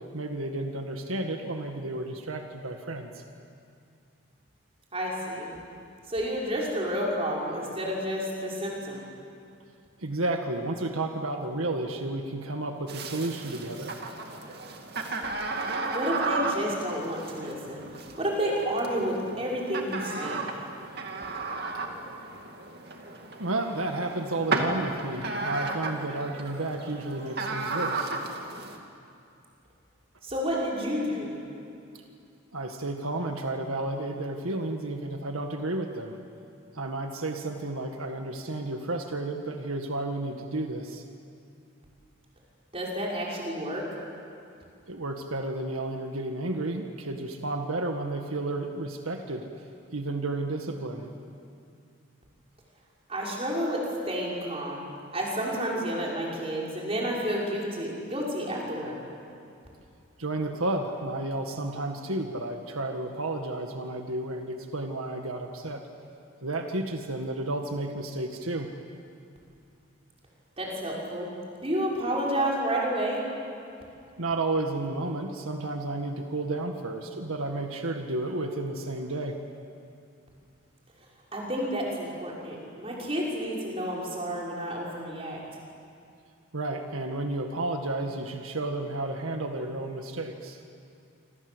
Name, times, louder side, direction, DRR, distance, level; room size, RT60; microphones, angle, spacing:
voice 1, 0.0-3.2 10.0-14.0 23.4-28.1 32.5-36.2 36.7-41.0 44.9-49.5 49.9-51.1 60.2-65.8 66.4-68.7 74.2-79.4 86.5-90.6, right 2 dB, 85° right, 4 dB, 1.8 m, -32 dB
voice 2, 4.9-5.5 6.1-9.0 15.9-17.8 18.2-20.4 30.2-31.4 42.7-43.9 53.1-54.8 55.1-59.0 70.6-71.3 71.6-73.2 81.3-85.4, equal, 30° right, -3 dB, 6.1 m, -30 dB
sound 1, 12.9-28.8, right 3 dB, 50° right, 2.5 m, -34 dB
27.0 x 27.0 x 8.1 m, 2.5 s
head